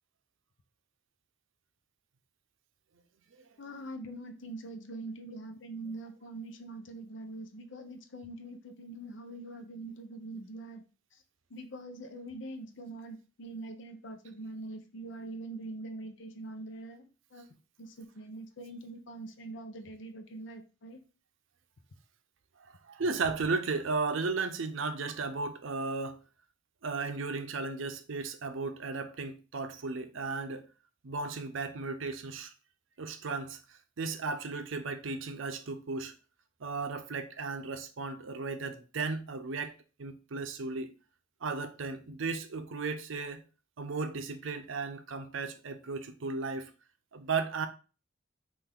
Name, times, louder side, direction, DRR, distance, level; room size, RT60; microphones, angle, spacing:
voice 1, 3.6-10.8 11.5-17.5 17.8-21.0, right 2 dB, 65° left, 0.7 m, -43 dB
voice 2, 22.6-26.2 26.8-30.7 31.0-32.5 33.0-36.1 36.6-39.7 40.0-40.9 41.4-43.4 43.8-46.7 47.1-47.7, right 4 dB, 75° right, 0.6 m, -35 dB
5.7 x 2.6 x 3.5 m
head